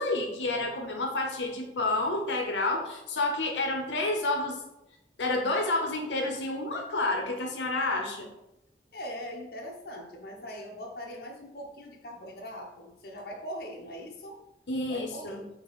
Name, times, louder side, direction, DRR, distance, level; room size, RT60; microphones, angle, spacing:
voice 1, 0.0-4.6 5.2-8.3 14.7-15.4, left 2 dB, 90° left, 2 dB, 0.7 m, -29 dB
voice 2, 8.9-14.4 14.9-15.4, equal, 55° left, 1 dB, 0.8 m, -41 dB
4.7 x 2.8 x 4.0 m, 0.90 s
head